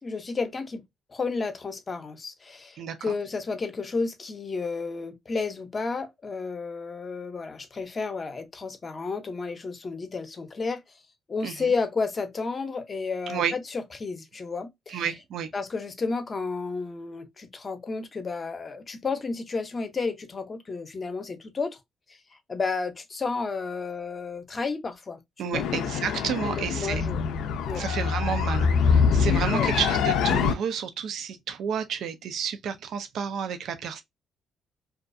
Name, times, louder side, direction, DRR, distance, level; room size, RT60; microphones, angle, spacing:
voice 1, 0.0-0.8 1.1-10.8 11.3-15.0 15.5-21.8 22.5-25.7 26.4-27.2 27.6-27.8 29.5-29.7, left 4 dB, 35° left, 0.6 m, -32 dB
voice 2, 2.8-3.1 11.4-11.7 13.3-13.5 14.9-15.5 25.4-27.0 27.7-34.0, right 7 dB, 75° right, 0.4 m, -31 dB
sound 1, 25.5-30.5, left 6 dB, 90° left, 0.4 m, -24 dB
2.4 x 2.2 x 2.5 m
cardioid pair, 90°, 0 cm